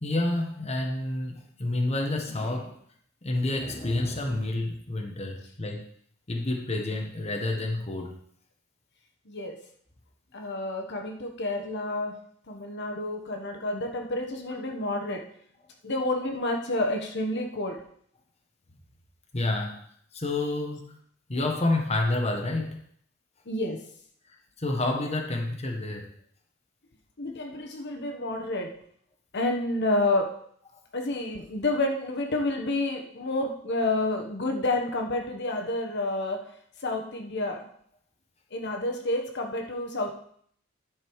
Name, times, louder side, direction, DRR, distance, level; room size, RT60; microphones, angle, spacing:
voice 1, 0.0-2.8 3.2-5.8 6.3-8.1 12.5-12.6 19.3-19.8 20.1-21.0 21.3-22.8 24.3-26.1, left 2 dB, 30° left, 1 dB, 1.2 m, -29 dB
voice 2, 9.3-9.6 10.3-12.2 12.5-15.2 15.8-17.8 23.5-23.8 27.2-28.7 29.3-30.4 30.9-36.5 36.8-37.7 38.5-40.1, left 2 dB, 60° left, 3 dB, 1.2 m, -29 dB
11.0 x 5.3 x 4.7 m, 0.63 s
head